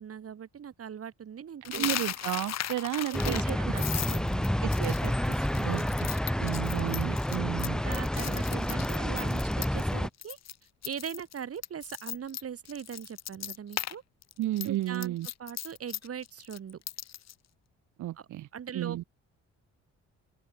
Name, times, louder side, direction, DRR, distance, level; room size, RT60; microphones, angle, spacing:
voice 1, 0.0-1.9 3.1-4.5 5.5-6.0 7.6-10.4 10.8-14.0 14.6-16.8 18.5-19.1, right 8 dB, 50° right, 3.3 m, -40 dB
Coin (dropping), 1.6-9.9 10.2-10.5 10.8-13.9 14.2-17.3, left 11 dB, 60° left, 1.4 m, -37 dB
voice 2, 1.7-3.4 3.7-3.8 4.6-5.8 6.4-7.8 14.4-15.3 18.0-18.5 18.7-19.0, right 14 dB, 80° right, 1.3 m, -33 dB
sound 1, 3.1-10.1, equal, ahead, 0.9 m, -29 dB
open air
cardioid pair, 90°, 30 cm